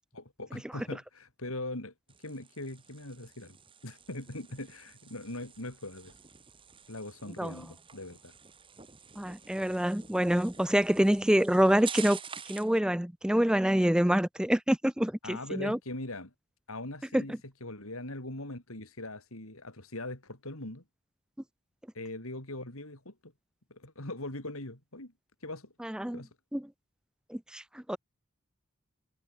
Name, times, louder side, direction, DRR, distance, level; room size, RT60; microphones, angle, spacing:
voice 1, 0.1-1.9 2.2-3.6 3.8-6.1 6.9-8.3 15.2-16.3 16.7-20.8 21.9-23.3 23.7-25.1 25.4-25.7 26.1-26.3, left 2 dB, 70° left, 4.8 m, -41 dB
sound 1, 2.1-12.8, right 7 dB, 25° right, 2.3 m, -47 dB
voice 2, 9.2-12.2 12.5-15.8 17.1-17.2 25.8-26.2 26.5-26.6 27.3-28.0, equal, 5° right, 0.4 m, -26 dB
head